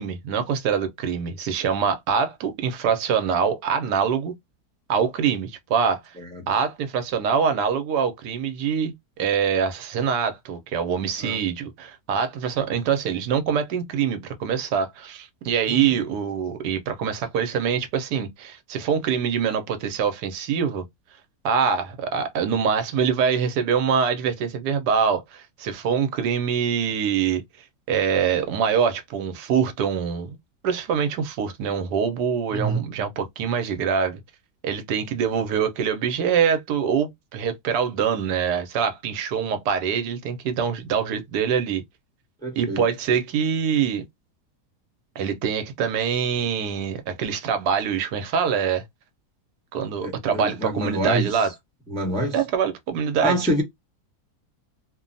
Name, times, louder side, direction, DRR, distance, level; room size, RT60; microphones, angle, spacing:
voice 1, 0.0-4.3 4.9-6.1 6.5-20.8 21.4-27.4 27.9-30.3 30.6-34.2 34.6-41.8 42.6-44.0 45.2-48.8 49.7-51.5 52.3-53.6, right 7 dB, 80° right, 1.2 m, -24 dB
voice 2, 32.5-32.8 42.4-42.8 50.0-51.5 51.9-52.4 53.2-53.6, right 1 dB, 5° left, 0.6 m, -26 dB
3.0 x 2.2 x 2.5 m
omnidirectional pair, 1.8 m